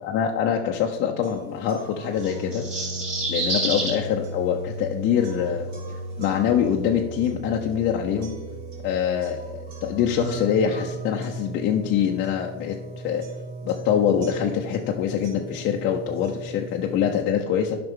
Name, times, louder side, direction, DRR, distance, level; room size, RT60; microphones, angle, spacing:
voice 1, 0.0-2.7 3.3-5.7 6.2-8.4 8.8-12.8 13.0-13.2 13.6-17.8, left 8 dB, 30° left, 0 dB, 0.5 m, -24 dB
sound 1, 1.2-17.2, right 2 dB, 55° right, 2.8 m, -37 dB
sound 2, 2.2-4.0, right 2 dB, 15° right, 3.0 m, -27 dB
11.5 x 5.7 x 3.6 m, 1.2 s
supercardioid pair, 150°, 37 cm